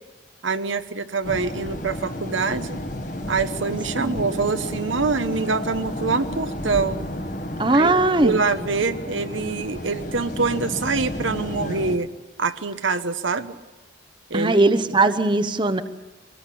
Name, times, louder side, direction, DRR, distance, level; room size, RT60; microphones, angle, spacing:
voice 1, 0.4-2.8 3.3-7.0 7.7-8.0 8.2-12.1 12.4-13.5 14.3-14.7, right 4 dB, 80° right, 10 dB, 1.1 m, -25 dB
sound 1, 1.2-12.0, left 1 dB, 40° left, 1.6 m, -32 dB
voice 2, 7.6-8.4 14.3-15.8, right 2 dB, 25° right, 10 dB, 0.9 m, -19 dB
23.5 x 19.5 x 8.5 m, 1.1 s
head